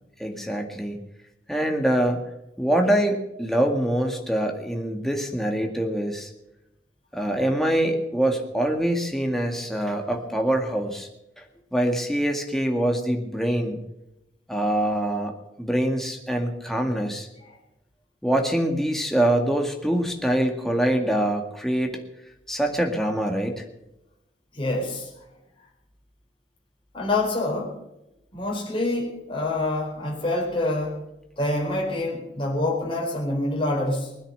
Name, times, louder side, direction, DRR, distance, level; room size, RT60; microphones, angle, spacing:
voice 1, 0.2-1.0 1.5-2.2 2.6-6.3 7.1-11.1 11.7-13.8 14.5-17.3 18.2-22.0 22.5-23.6, right 1 dB, ahead, 2 dB, 2.0 m, -24 dB
voice 2, 24.5-25.1 26.9-27.8 28.3-31.0 31.4-34.2, left 2 dB, 30° left, -1 dB, 4.5 m, -26 dB
20.5 x 10.0 x 6.8 m, 0.91 s
head